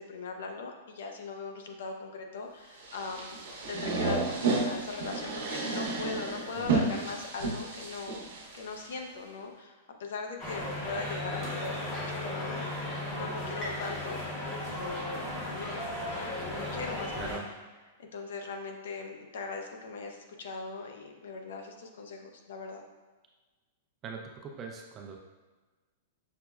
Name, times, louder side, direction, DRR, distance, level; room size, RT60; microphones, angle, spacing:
voice 1, 0.0-3.4 3.7-8.3 8.5-14.2 14.7-17.4 18.0-22.8, left 4 dB, 75° left, 3 dB, 0.5 m, -40 dB
sound 1, 2.8-8.9, right 3 dB, 90° right, 0.7 m, -32 dB
voice 2, 6.6-7.0 17.1-17.5 24.0-25.2, right 5 dB, 20° right, 1 dB, 0.4 m, -41 dB
sound 2, 10.4-17.4, left 1 dB, 25° left, 0.8 m, -36 dB
5.7 x 2.0 x 2.3 m, 1.3 s
supercardioid pair, 160°, 0 cm